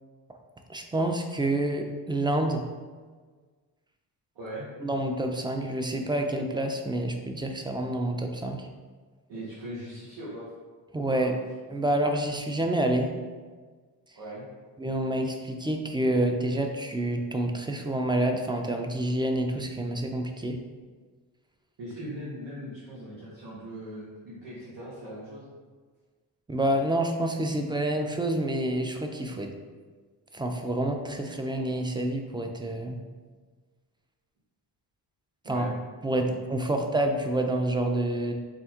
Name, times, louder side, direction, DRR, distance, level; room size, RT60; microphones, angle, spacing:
voice 1, 0.7-2.6 4.8-8.7 10.9-11.3 11.7-13.1 14.8-20.6 26.5-29.5 30.3-33.0 35.5-35.7 36.0-38.3, right 1 dB, 10° right, 4 dB, 0.4 m, -28 dB
voice 2, 4.3-4.7 9.3-10.5 11.1-11.4 14.1-14.4 21.8-25.5 35.4-35.7 36.2-36.4, right 1 dB, 70° right, -10 dB, 1.4 m, -40 dB
3.6 x 2.3 x 4.3 m, 1.5 s
supercardioid pair, 60°, 44 cm